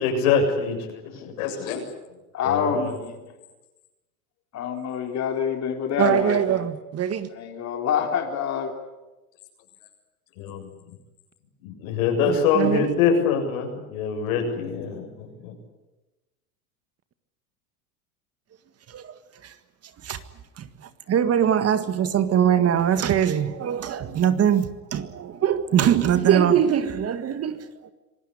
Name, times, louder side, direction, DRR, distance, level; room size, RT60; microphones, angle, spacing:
voice 1, 0.0-1.9 2.4-2.9 10.4-10.9 11.6-15.5, left 6 dB, 70° left, 7.6 m, -25 dB
voice 2, 2.3-3.2 4.5-6.6 7.3-8.7, left 7 dB, 35° left, 3.3 m, -26 dB
voice 3, 6.0-7.3 12.3-12.9 18.9-19.1 19.4-19.5 20.0-20.2 20.6-27.9, right 9 dB, 35° right, 1.7 m, -22 dB
26.0 x 18.0 x 9.9 m
hypercardioid pair, 100°, 44 cm